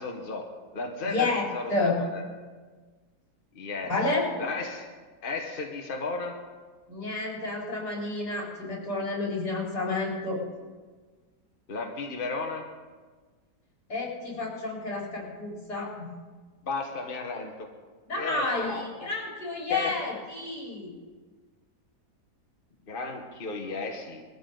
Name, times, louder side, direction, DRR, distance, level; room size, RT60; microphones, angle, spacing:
voice 1, 0.0-2.2 3.5-3.9 4.4-4.9 5.2-6.4 11.7-12.6 16.6-17.7 18.2-19.1 19.7-20.0 22.9-24.2, left 3 dB, 35° left, 2 dB, 1.4 m, -34 dB
voice 2, 1.0-2.0 3.8-4.3 6.9-10.4 13.9-16.1 18.1-20.9, left 3 dB, 75° left, -4 dB, 4.8 m, -30 dB
20.5 x 14.5 x 3.9 m, 1.4 s
omnidirectional pair, 1.8 m